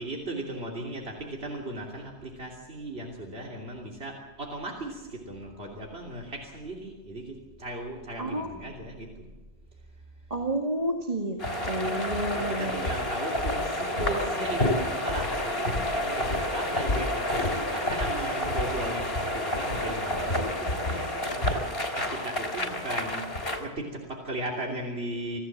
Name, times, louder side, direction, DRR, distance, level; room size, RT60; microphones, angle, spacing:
voice 1, 0.0-9.3 11.8-21.6 22.0-25.4, right 1 dB, 70° right, -1 dB, 3.3 m, -37 dB
voice 2, 8.2-8.5 10.3-12.8, right 1 dB, 35° right, 2 dB, 2.1 m, -30 dB
sound 1, 11.4-23.6, left 1 dB, 65° left, 3.7 m, -29 dB
26.5 x 16.5 x 7.4 m, 1.2 s
omnidirectional pair, 1.1 m